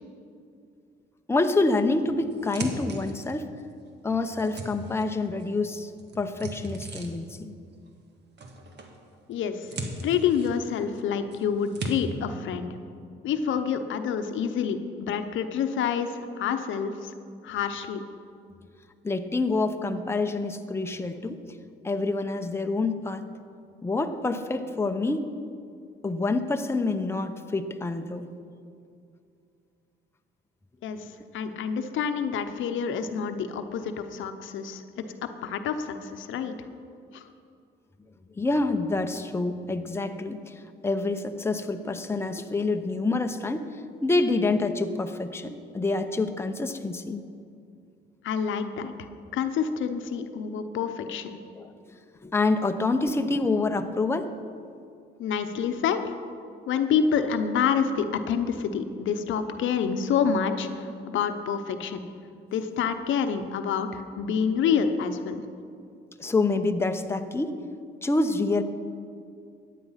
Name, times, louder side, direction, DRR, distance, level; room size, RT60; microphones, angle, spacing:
voice 1, 1.3-3.5 4.0-7.5 19.0-21.4 21.8-23.2 23.8-25.3 26.0-28.3 38.4-43.7 44.0-47.2 51.5-51.7 52.2-54.3 66.2-67.5 68.0-68.6, left 3 dB, 10° left, 6 dB, 0.8 m, -27 dB
sound 1, 1.8-3.6 4.0-5.5 5.7-7.4 8.4-9.0 9.3-11.0 11.3-11.9, right 2 dB, 60° right, 1.7 m, -38 dB
voice 2, 9.3-9.8 10.0-12.7 13.2-17.1 17.4-18.0 30.8-36.5 37.1-37.3 48.2-51.4 55.2-56.1 56.7-62.0 62.5-65.4, left 7 dB, 75° left, 8 dB, 0.9 m, -28 dB
14.5 x 9.4 x 5.7 m, 2.4 s
cardioid pair, 90°, 20 cm